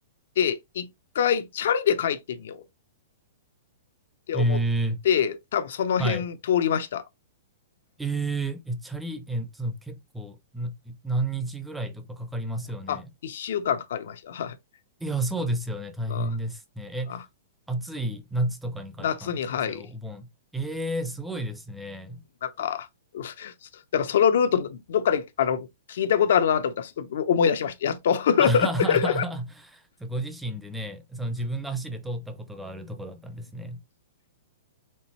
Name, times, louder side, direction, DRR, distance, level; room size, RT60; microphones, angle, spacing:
voice 1, 0.4-0.9 1.1-2.6 4.3-4.6 5.0-7.0 12.9-14.6 16.1-16.3 17.1-17.2 19.0-19.8 22.4-22.9 23.1-23.5 23.9-29.2, left 8 dB, 65° left, 0.6 m, -25 dB
voice 2, 4.3-5.0 6.0-6.3 8.0-13.1 15.0-17.2 17.7-22.2 28.4-33.8, right 1 dB, 5° right, 0.5 m, -31 dB
4.4 x 3.4 x 3.0 m
hypercardioid pair, 165°, 0 cm